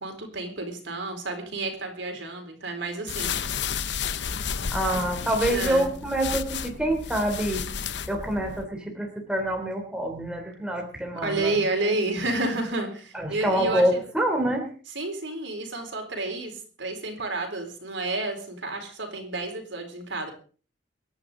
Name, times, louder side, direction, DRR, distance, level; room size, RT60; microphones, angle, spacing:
voice 1, 0.0-3.4 4.9-5.1 5.5-5.9 11.2-14.0 14.9-20.3, right 2 dB, 80° right, 3 dB, 4.2 m, -30 dB
sound 1, 3.1-8.7, left 6 dB, 65° left, 0.8 m, -32 dB
voice 2, 4.7-7.7 8.1-11.9 13.1-14.7, right 1 dB, 5° right, 1 dB, 3.3 m, -26 dB
25.5 x 10.5 x 3.9 m, 0.39 s
head